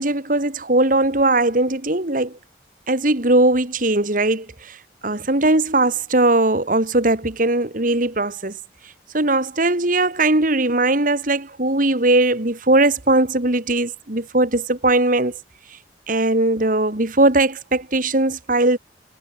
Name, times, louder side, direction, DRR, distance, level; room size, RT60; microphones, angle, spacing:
voice 1, 0.0-2.3 2.9-4.5 5.0-8.5 9.1-15.3 16.1-18.8, right 2 dB, 50° right, 2.4 m, -19 dB
head